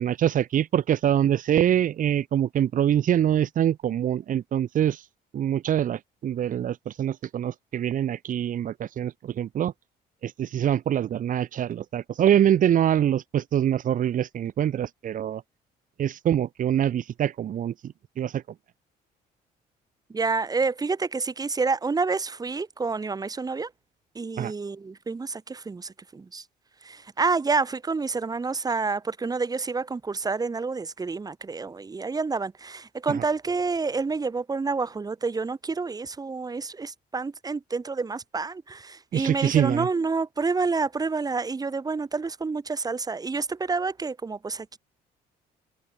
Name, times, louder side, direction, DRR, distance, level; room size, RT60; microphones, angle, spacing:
voice 1, 0.0-5.0 5.3-9.7 10.2-15.4 16.0-18.4 24.4-24.5 33.1-33.2 39.1-39.9, right 10 dB, 50° right, 1.8 m, -24 dB
voice 2, 20.1-23.7 24.2-26.4 26.8-44.8, right 4 dB, 20° right, 1.9 m, -28 dB
cardioid pair, 110°, 17 cm